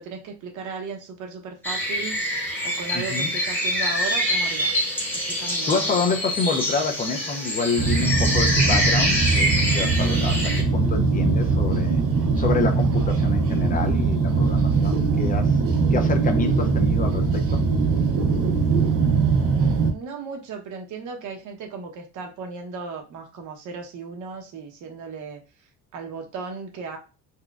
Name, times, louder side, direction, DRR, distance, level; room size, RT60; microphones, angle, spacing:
voice 1, 0.0-2.2 2.6-4.8 5.3-5.9 18.9-25.4 25.9-27.0, right 4 dB, 75° right, 2 dB, 1.0 m, -36 dB
sound 1, 1.6-10.6, equal, 5° left, 0.8 m, -25 dB
voice 2, 2.9-3.3 5.7-12.0 12.4-15.6 15.9-17.6, left 4 dB, 25° left, 6 dB, 0.5 m, -28 dB
sound 2, 7.8-19.9, right 4 dB, 50° right, 0.5 m, -21 dB
4.2 x 2.2 x 2.4 m, 0.30 s
cardioid pair, 150°, 31 cm